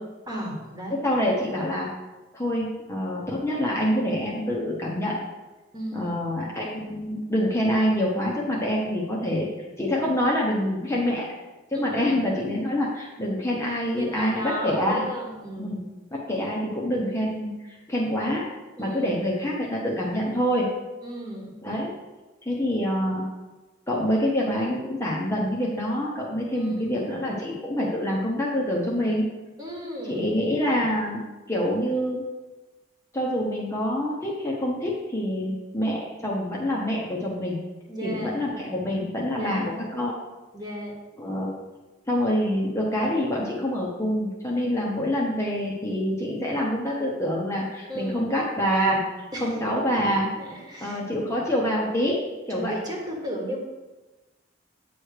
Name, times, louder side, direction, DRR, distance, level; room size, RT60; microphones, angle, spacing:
voice 1, 0.3-1.1 5.7-6.2 11.7-12.3 14.0-15.9 18.8-19.1 21.0-21.5 26.5-27.0 29.6-30.4 37.9-38.3 39.4-39.7 40.5-40.9 47.9-48.3 49.3-49.6 49.9-51.0 52.5-53.6, equal, 20° right, -1 dB, 1.5 m, -35 dB
voice 2, 0.9-1.9 2.3-5.2 5.9-9.5 9.8-11.3 11.7-15.1 15.6-15.8 16.1-18.4 18.8-20.7 21.6-21.9 22.4-23.2 23.9-29.3 30.1-32.2 33.1-37.6 38.0-40.1 41.2-41.6 42.1-49.0 49.4-50.3 50.8-52.2 52.5-52.7, equal, 15° left, -4 dB, 0.9 m, -26 dB
8.8 x 3.2 x 6.5 m, 1.2 s
head